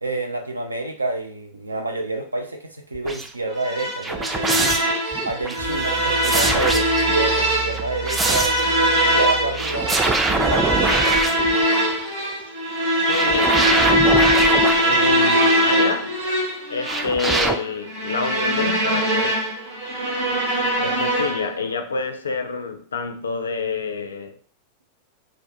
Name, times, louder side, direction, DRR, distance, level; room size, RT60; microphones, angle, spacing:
voice 1, 0.0-4.8 5.2-8.5 9.1-10.9 20.8-20.9, right 2 dB, 80° right, 0.4 m, -28 dB
sound 1, 2.9-3.3 4.0-5.6 6.2-7.2 7.7-8.7 9.5-12.0 13.1-15.6 16.8-17.6, right 3 dB, 15° right, 0.3 m, -24 dB
sound 2, 3.6-21.6, equal, 60° right, 0.9 m, -21 dB
sound 3, 5.6-11.7, right 7 dB, 35° right, 0.7 m, -36 dB
voice 2, 13.0-13.7 14.8-16.2 16.7-19.5 20.8-24.4, left 4 dB, 70° left, 0.3 m, -28 dB
2.4 x 2.1 x 2.7 m
figure-of-eight pair, 90°, 0 cm